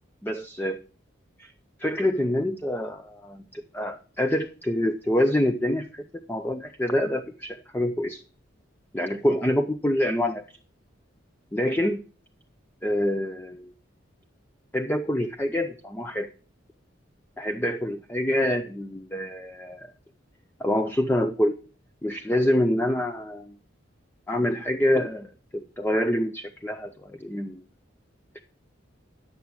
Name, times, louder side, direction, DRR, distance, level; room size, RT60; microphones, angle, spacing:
voice 1, 0.2-0.8 1.4-1.5 1.8-8.2 8.9-10.4 11.5-12.0 12.8-13.7 14.7-16.3 17.4-19.9 20.6-21.6 22.0-23.5 24.3-27.6, left 1 dB, 10° left, 7 dB, 0.5 m, -26 dB
10.5 x 7.0 x 6.0 m, 0.40 s
head